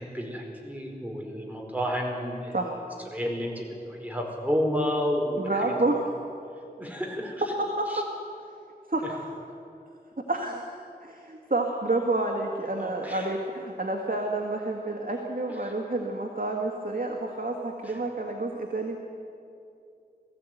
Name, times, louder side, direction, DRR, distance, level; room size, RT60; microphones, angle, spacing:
voice 1, 0.0-2.7 3.1-5.8 6.8-7.4 7.9-8.0 12.8-13.3 15.6-15.7 17.7-18.0, equal, 10° right, 0 dB, 4.7 m, -31 dB
voice 2, 5.4-6.0 7.6-8.0 8.9-9.2 10.3-10.6 11.0-19.0, right 2 dB, 60° right, 1 dB, 1.9 m, -29 dB
20.0 x 15.0 x 9.2 m, 2.6 s
wide cardioid pair, 45°, 16 cm